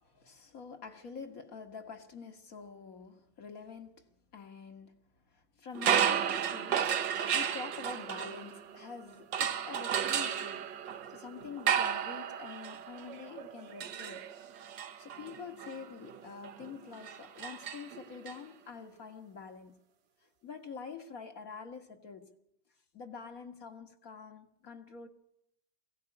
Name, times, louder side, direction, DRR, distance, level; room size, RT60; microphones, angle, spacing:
voice 1, 0.0-5.0 5.3-10.8 11.1-14.4 15.0-19.8 20.4-22.3 22.9-25.1, left 5 dB, 50° left, 2.1 m, -47 dB
sound 1, 5.7-8.8 9.3-18.3, right 8 dB, 70° right, 1.7 m, -33 dB
22.5 x 17.0 x 9.9 m
omnidirectional pair, 2.0 m